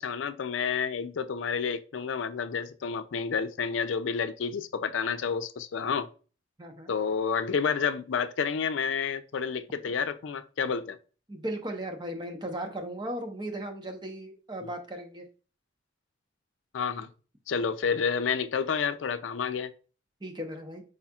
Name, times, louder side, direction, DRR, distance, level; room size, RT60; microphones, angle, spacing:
voice 1, 0.0-6.1 6.9-11.0 16.7-17.1 17.5-19.7, left 6 dB, 85° left, 0.4 m, -30 dB
voice 2, 6.6-6.9 11.3-15.3 20.2-20.8, right 1 dB, 25° right, 0.9 m, -36 dB
4.9 x 4.2 x 2.3 m
head